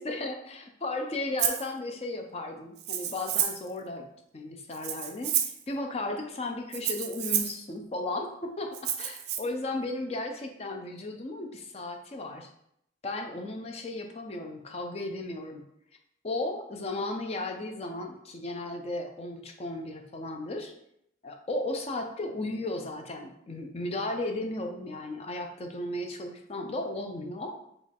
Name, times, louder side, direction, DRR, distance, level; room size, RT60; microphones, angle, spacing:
voice 1, 0.0-4.1 4.3-12.5 13.0-15.7 16.2-20.7 21.2-27.6, left 2 dB, 35° left, 4 dB, 0.4 m, -35 dB
Rattle (instrument), 1.4-1.7 2.8-3.7 4.7-5.6 6.7-7.6 8.7-9.4, right 9 dB, 60° right, 0.4 m, -30 dB
5.1 x 2.4 x 3.4 m, 0.76 s
head